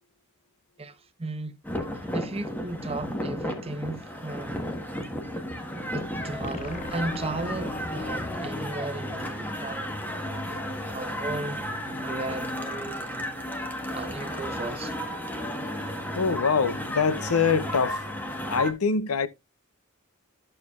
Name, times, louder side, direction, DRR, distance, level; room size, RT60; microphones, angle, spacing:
voice 1, 1.2-1.6 1.9-4.8 5.9-10.0 10.5-10.6 10.9-11.6 12.0-13.1 13.9-14.9, right 2 dB, 30° right, 0.8 m, -35 dB
sound 1, 1.6-18.7, equal, 10° left, 1.2 m, -33 dB
sound 2, 6.4-9.8, left 2 dB, 35° left, 0.7 m, -40 dB
voice 2, 16.2-18.1 18.5-19.3, left 5 dB, 85° left, 0.6 m, -24 dB
11.5 x 6.7 x 2.4 m
head